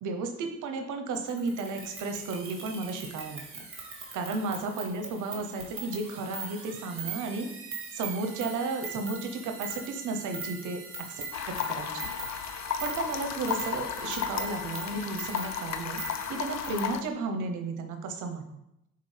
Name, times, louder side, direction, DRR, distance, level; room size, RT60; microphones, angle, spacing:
voice 1, 0.0-3.6 4.1-7.5 7.9-10.8 11.1-12.1 12.8-16.0 16.3-18.6, right 3 dB, 80° right, 6 dB, 0.8 m, -33 dB
sound 1, 1.3-16.9, right 4 dB, 45° right, 1.8 m, -41 dB
sound 2, 11.3-17.0, left 8 dB, 65° left, 0.6 m, -34 dB
9.6 x 4.1 x 3.3 m, 0.85 s
cardioid pair, 90°, 30 cm